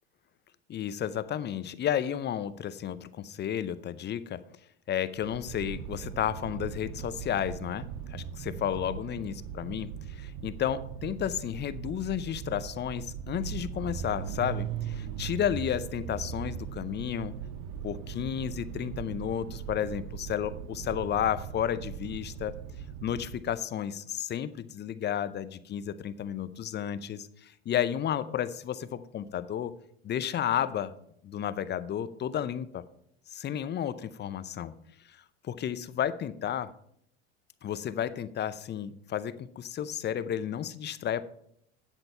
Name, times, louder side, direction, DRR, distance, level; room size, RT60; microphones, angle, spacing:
voice 1, 0.7-4.4 4.9-17.3 17.8-22.6 23.0-29.7 30.0-30.9 31.2-32.8 33.3-34.7 35.1-36.7 37.6-41.2, left 10 dB, 35° left, 15 dB, 0.6 m, -32 dB
sound 1, 5.2-23.5, right 9 dB, 60° right, 0.8 m, -39 dB
9.1 x 7.7 x 4.5 m, 0.70 s
hypercardioid pair, 90°, 32 cm